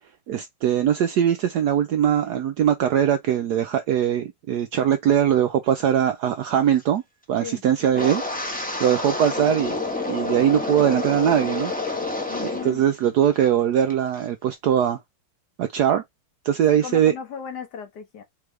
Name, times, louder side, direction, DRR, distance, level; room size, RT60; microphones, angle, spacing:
voice 1, 0.3-7.0 7.3-8.2 8.8-9.8 10.1-11.7 12.4-15.0 15.6-16.0 16.4-17.1, right 9 dB, 75° right, 0.9 m, -21 dB
Wind, 7.9-12.8 13.0-13.5 13.9-14.2, left 2 dB, 5° left, 0.7 m, -28 dB
voice 2, 12.3-12.8 16.7-18.2, left 7 dB, 60° left, 1.5 m, -36 dB
4.2 x 3.4 x 3.2 m
omnidirectional pair, 2.2 m